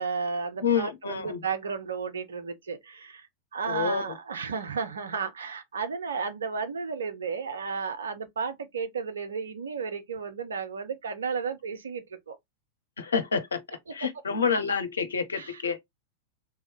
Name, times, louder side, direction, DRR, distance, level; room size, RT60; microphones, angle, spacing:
voice 1, 0.0-12.4 13.9-14.0 15.4-15.8, right 5 dB, 70° right, 0.8 m, -33 dB
voice 2, 0.6-1.4 3.7-4.0 13.0-15.8, left 6 dB, 70° left, 0.8 m, -28 dB
3.6 x 3.0 x 3.4 m
figure-of-eight pair, 90°, 0 cm